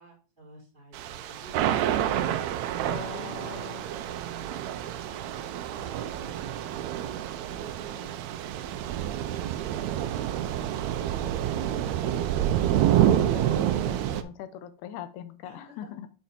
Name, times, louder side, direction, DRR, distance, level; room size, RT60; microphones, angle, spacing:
voice 1, 0.0-1.7 4.0-5.3 15.4-15.9, right 4 dB, ahead, -5 dB, 3.1 m, -51 dB
Thunder / Rain, 0.9-14.2, right 11 dB, 80° right, 1.7 m, -28 dB
voice 2, 2.9-3.8 13.3-16.1, left 10 dB, 80° left, 12 dB, 2.0 m, -41 dB
6.8 x 4.9 x 4.2 m, 0.35 s
omnidirectional pair, 3.6 m